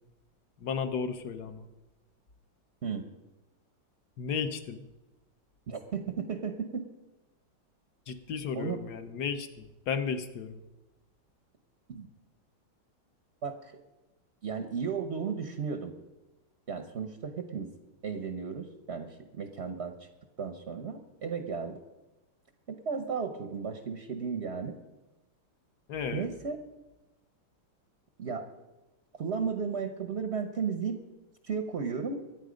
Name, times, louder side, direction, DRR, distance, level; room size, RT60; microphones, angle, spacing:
voice 1, 0.6-1.7 4.2-4.8 8.1-10.6 25.9-26.3, left 6 dB, 55° left, 9 dB, 1.4 m, -34 dB
voice 2, 5.7-6.9 8.5-8.8 11.9-12.1 13.4-13.7 14.4-15.9 16.7-17.7 18.0-20.1 20.4-21.8 22.7-24.7 26.1-26.6 28.2-28.5 29.2-31.0 31.4-32.2, right 6 dB, 45° right, 7 dB, 0.9 m, -34 dB
23.5 x 9.2 x 5.2 m, 1.0 s
omnidirectional pair, 2.3 m